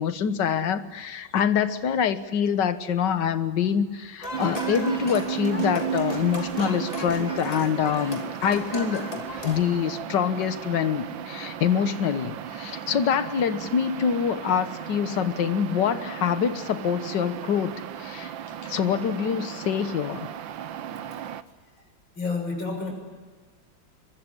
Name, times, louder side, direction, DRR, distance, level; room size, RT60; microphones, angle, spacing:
voice 1, 0.0-18.3 18.6-20.3, left 7 dB, 65° left, 11 dB, 1.8 m, -25 dB
sound 1, 4.2-9.6, left 2 dB, 20° left, 2.6 m, -35 dB
sound 2, 4.3-21.4, right 9 dB, 80° right, 1.7 m, -35 dB
voice 2, 22.2-22.9, left 4 dB, 85° left, 2 dB, 7.5 m, -29 dB
23.0 x 23.0 x 9.7 m, 1.5 s
omnidirectional pair, 2.1 m